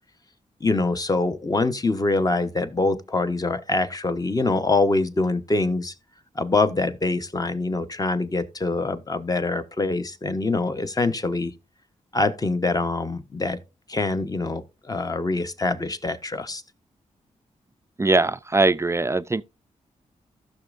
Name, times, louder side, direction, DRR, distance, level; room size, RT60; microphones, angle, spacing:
voice 1, 0.6-5.9 6.3-11.5 12.1-13.6 13.9-16.6, left 3 dB, 30° left, 0.9 m, -24 dB
voice 2, 18.0-19.4, right 2 dB, 20° right, 0.4 m, -21 dB
14.5 x 6.3 x 2.5 m
cardioid pair, 65°, 13 cm